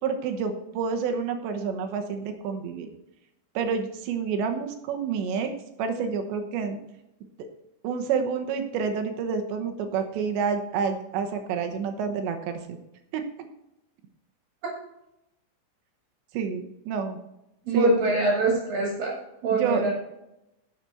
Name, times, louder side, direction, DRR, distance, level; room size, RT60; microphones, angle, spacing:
voice 1, 0.0-2.9 3.6-5.5 5.8-6.8 7.8-12.8 13.1-13.2 16.3-17.2 17.7-18.1 19.5-19.9, right 6 dB, 75° right, 6 dB, 3.1 m, -29 dB
voice 2, 17.7-19.9, right 2 dB, 50° right, -1 dB, 3.4 m, -24 dB
12.0 x 6.7 x 4.3 m, 0.88 s
omnidirectional pair, 5.7 m